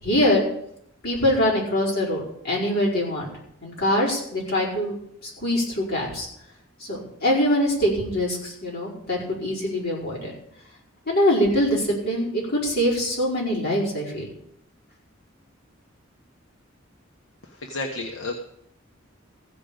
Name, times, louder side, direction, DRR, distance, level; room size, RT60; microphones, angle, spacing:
voice 1, 0.0-0.4 1.0-3.3 3.6-5.0 5.4-6.3 6.9-10.3 11.1-14.3, equal, 50° left, -5 dB, 5.0 m, -23 dB
voice 2, 17.4-18.3, left 2 dB, 70° left, 2 dB, 1.2 m, -31 dB
15.5 x 5.2 x 8.9 m, 0.75 s
head